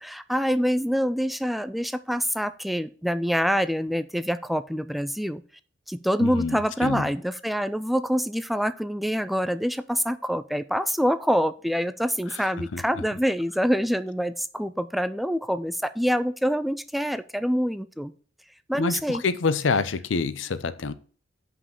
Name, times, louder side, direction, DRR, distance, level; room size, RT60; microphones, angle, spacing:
voice 1, 0.0-5.4 5.9-18.1 18.7-19.2, equal, ahead, 0.3 m, -26 dB
voice 2, 6.2-7.0 12.3-12.4 12.7-12.8 18.8-20.9, left 4 dB, 80° left, 0.6 m, -27 dB
5.6 x 5.2 x 6.4 m
head